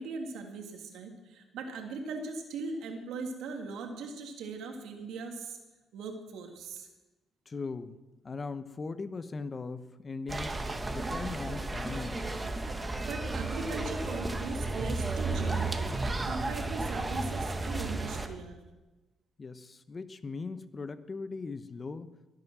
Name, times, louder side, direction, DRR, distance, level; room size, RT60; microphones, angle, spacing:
voice 1, 0.0-5.6 5.9-6.9 13.1-15.9 16.2-18.6, right 3 dB, 85° right, 3 dB, 2.5 m, -39 dB
voice 2, 7.5-8.0 8.2-10.6 10.9-12.2 19.4-22.1, left 4 dB, 35° left, 12 dB, 1.0 m, -39 dB
sound 1, 10.3-18.3, right 2 dB, 20° right, 1.6 m, -33 dB
21.0 x 9.0 x 6.2 m, 1.1 s
cardioid pair, 90°, 0 cm